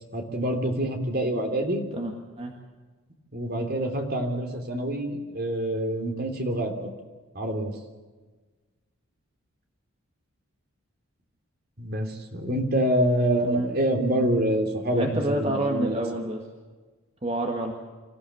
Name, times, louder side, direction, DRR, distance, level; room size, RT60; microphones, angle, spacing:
voice 1, 0.1-1.8 3.3-6.9 7.3-7.7 11.8-16.0, right 1 dB, 45° right, 3 dB, 3.2 m, -26 dB
voice 2, 1.9-2.5 13.4-13.7 14.9-16.4 17.2-17.7, right 1 dB, 25° right, 2 dB, 1.8 m, -28 dB
26.0 x 15.0 x 7.8 m, 1.3 s
head